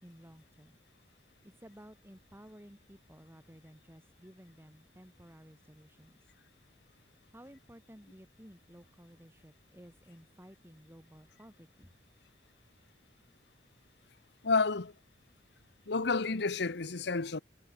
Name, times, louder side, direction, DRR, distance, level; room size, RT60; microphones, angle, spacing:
voice 1, 0.0-0.8 1.4-6.2 7.3-11.9, equal, 15° right, 6.9 m, -55 dB
voice 2, 14.4-14.9 15.9-17.4, left 4 dB, 65° left, 1.1 m, -30 dB
head